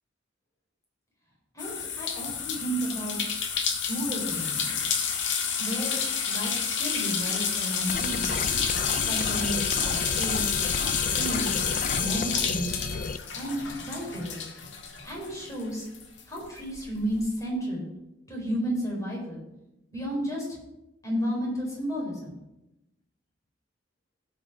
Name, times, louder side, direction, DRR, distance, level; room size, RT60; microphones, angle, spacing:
voice 1, 1.5-3.2 3.9-4.8 5.6-6.0 6.2-8.4 8.9-10.5 11.1-11.6 12.0-12.7 13.3-14.4 15.0-15.9 16.3-17.9 18.3-19.4 19.9-20.6 21.0-22.3, equal, 20° left, -3 dB, 4.3 m, -32 dB
sound 1, 1.6-15.6 15.9-17.2, left 6 dB, 80° left, 1.6 m, -30 dB
sound 2, 7.9-13.2, left 5 dB, 45° left, 0.4 m, -31 dB
16.0 x 5.5 x 5.0 m, 0.92 s
head